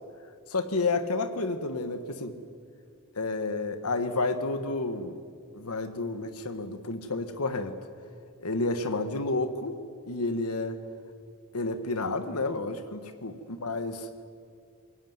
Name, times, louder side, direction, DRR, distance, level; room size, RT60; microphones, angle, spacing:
voice 1, 0.5-2.3 3.2-5.2 5.5-7.8 8.4-9.8 10.1-10.8 11.5-14.1, left 3 dB, 85° left, 9 dB, 1.5 m, -30 dB
23.0 x 18.0 x 9.5 m, 2.3 s
head